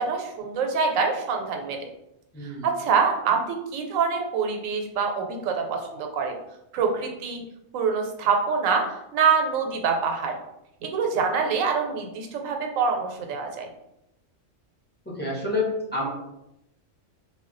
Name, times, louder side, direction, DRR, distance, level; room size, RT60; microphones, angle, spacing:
voice 1, 0.0-1.9 2.4-6.3 6.7-7.4 7.7-10.3 10.8-13.7, right 5 dB, 80° right, 3 dB, 1.0 m, -25 dB
voice 2, 2.3-2.7 15.1-16.1, left 2 dB, 10° left, -6 dB, 0.5 m, -28 dB
2.2 x 2.1 x 3.7 m, 0.86 s
omnidirectional pair, 1.3 m